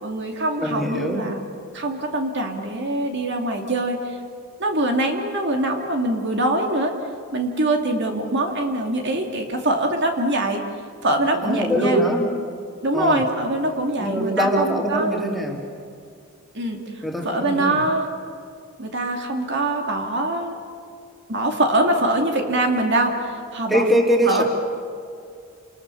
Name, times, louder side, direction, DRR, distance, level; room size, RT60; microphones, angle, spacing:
voice 1, 0.0-1.4 1.7-4.2 4.6-6.9 7.3-10.6 11.0-12.0 12.8-15.1 16.5-18.1 18.8-20.6 21.3-23.8 24.3-24.4, right 1 dB, 50° right, 2 dB, 2.5 m, -23 dB
voice 2, 0.6-1.2 11.4-12.3 12.9-13.2 14.0-15.6 17.0-17.8 23.7-24.4, equal, ahead, -1 dB, 3.3 m, -22 dB
30.0 x 27.5 x 7.0 m, 2.3 s
head